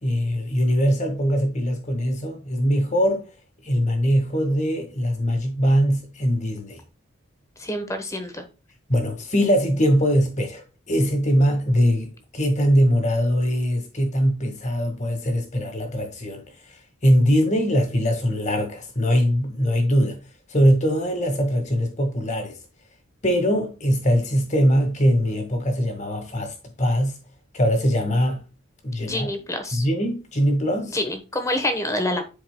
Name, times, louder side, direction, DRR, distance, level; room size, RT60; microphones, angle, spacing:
voice 1, 0.0-3.2 3.6-6.8 8.9-16.4 17.0-20.2 20.5-22.6 23.2-27.1 27.5-28.4 28.8-29.3 29.7-31.0, equal, 35° left, 1.7 m, -21 dB
voice 2, 7.6-8.4 29.0-29.8 30.9-32.2, left 1 dB, 15° left, 1.0 m, -27 dB
11.0 x 4.6 x 2.2 m
head